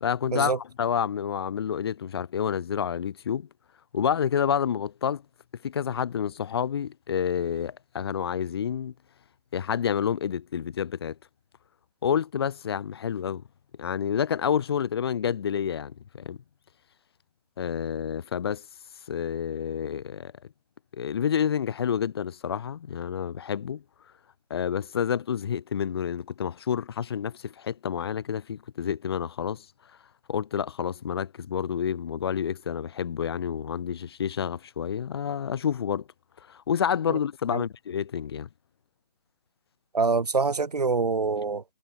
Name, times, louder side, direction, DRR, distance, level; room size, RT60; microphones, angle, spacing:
voice 1, 0.0-3.5 3.9-5.2 5.6-8.9 9.5-11.2 12.0-13.4 13.8-16.4 17.6-18.6 19.1-20.3 20.9-23.8 24.5-29.7 30.3-36.0 36.5-38.5, left 8 dB, 35° left, 2.3 m, -29 dB
voice 2, 39.9-41.6, right 4 dB, 70° right, 1.4 m, -25 dB
figure-of-eight pair, 150°, 21 cm